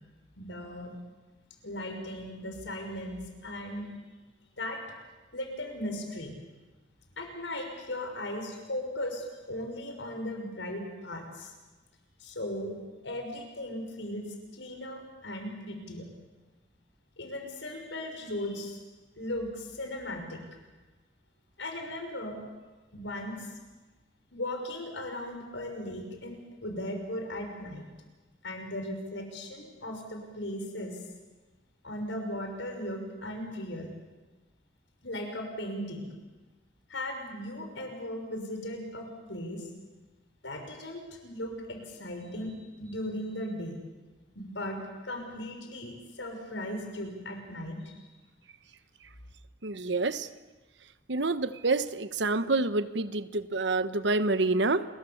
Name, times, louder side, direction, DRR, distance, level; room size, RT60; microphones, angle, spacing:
voice 1, 0.4-0.9 1.6-3.9 4.6-4.8 5.3-6.4 7.2-11.5 12.2-12.8 13.0-16.0 17.2-18.8 19.2-20.4 21.6-22.4 22.9-23.5 24.3-27.9 28.4-31.0 31.8-33.9 35.0-36.1 36.9-39.7 40.4-43.8 44.3-48.0, left 1 dB, 90° left, 4 dB, 6.2 m, -37 dB
voice 2, 49.6-50.3 51.1-54.8, right 3 dB, 75° right, 12 dB, 1.1 m, -27 dB
29.5 x 22.5 x 7.2 m, 1.2 s
head